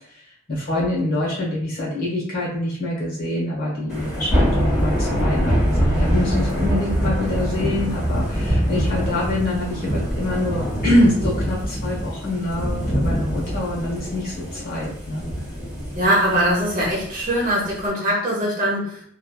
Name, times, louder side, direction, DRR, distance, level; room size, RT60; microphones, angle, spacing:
voice 1, 0.1-15.2, left 1 dB, 45° left, -4 dB, 1.1 m, -25 dB
Thunder / Rain, 3.9-17.9, equal, 5° right, 1.1 m, -24 dB
voice 2, 15.9-19.0, right 1 dB, 40° right, -5 dB, 0.9 m, -21 dB
3.2 x 2.2 x 2.3 m, 0.64 s
head